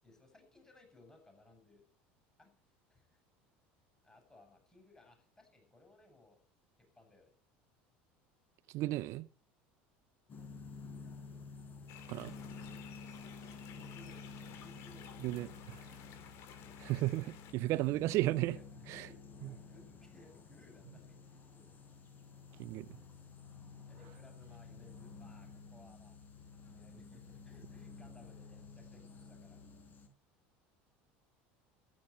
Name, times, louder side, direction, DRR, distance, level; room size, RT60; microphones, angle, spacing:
voice 1, 0.0-1.8 2.4-3.2 4.0-6.4 6.8-7.3 13.4-15.1 18.2-21.8 23.9-26.2 26.6-29.6, left 2 dB, 15° left, 7.7 m, -62 dB
voice 2, 8.7-9.3 12.1-12.3 15.2-15.8 16.8-18.6 18.9-19.1 22.6-22.9, right 17 dB, 60° right, 0.6 m, -34 dB
sound 1, 10.3-30.1, left 4 dB, 35° left, 4.2 m, -51 dB
sound 2, 11.9-17.5, left 9 dB, 60° left, 2.8 m, -55 dB
13.0 x 10.0 x 6.7 m
supercardioid pair, 100°, 5 cm